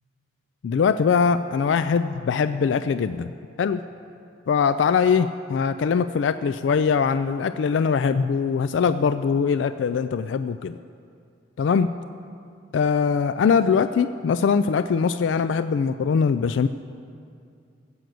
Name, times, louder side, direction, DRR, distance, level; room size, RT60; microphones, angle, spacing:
voice 1, 0.6-3.3 3.6-3.9 4.5-10.8 11.6-11.9 12.7-16.7, left 6 dB, 75° left, 12 dB, 0.3 m, -22 dB
14.0 x 7.9 x 7.7 m, 2.4 s
head